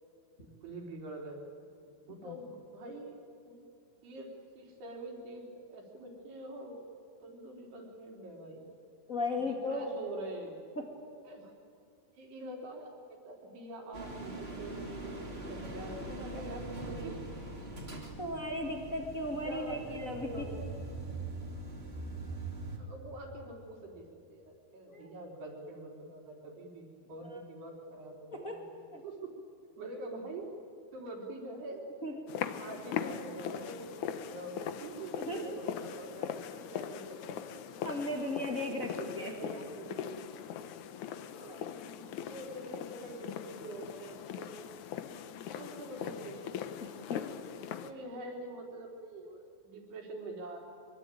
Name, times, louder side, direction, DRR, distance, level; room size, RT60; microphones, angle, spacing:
voice 1, 0.4-1.4 2.1-3.2 3.5-3.6 4.0-4.3 4.6-6.8 7.2-8.7 9.3-10.6 11.3-11.5 12.2-15.2 15.5-17.2 19.4-20.7 22.8-28.6 29.0-29.3 29.8-30.5 30.9-31.8 32.6-37.6 38.7-40.2 41.3-41.7 42.3-44.6 45.5-46.6 47.8-50.6, right 1 dB, 70° right, 1 dB, 5.8 m, -45 dB
voice 2, 9.1-9.9 10.7-10.9 18.2-20.5 24.9-25.1 28.3-28.6 28.9-29.0 32.0-32.3 35.2-35.6 37.8-38.9 39.2-39.3 46.8-47.3, left 1 dB, 50° left, 1 dB, 0.9 m, -36 dB
sound 1, 13.9-22.8, right 2 dB, 15° right, 2.4 m, -42 dB
sound 2, 32.3-47.9, left 9 dB, 85° left, 1.7 m, -40 dB
24.0 x 23.5 x 9.2 m, 2.4 s
omnidirectional pair, 4.9 m